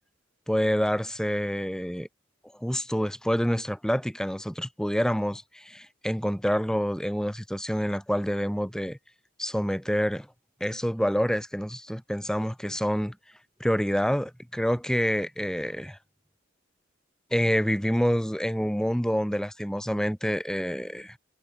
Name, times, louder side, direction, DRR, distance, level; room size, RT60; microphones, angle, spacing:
voice 1, 0.5-2.1 2.6-9.0 9.4-10.3 10.6-13.2 13.6-16.0 17.3-21.2, equal, 5° left, 2.3 m, -27 dB
head